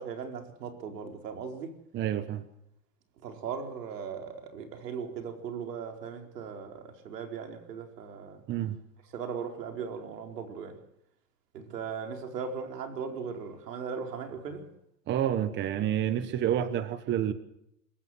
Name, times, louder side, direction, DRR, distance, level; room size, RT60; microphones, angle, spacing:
voice 1, 0.0-1.7 3.2-8.4 9.1-10.8 11.5-14.7, right 6 dB, 85° right, 4.7 m, -38 dB
voice 2, 1.9-2.4 8.5-8.8 15.1-17.3, right 10 dB, 25° right, 1.2 m, -29 dB
27.5 x 15.5 x 7.9 m
supercardioid pair, 145°, 47 cm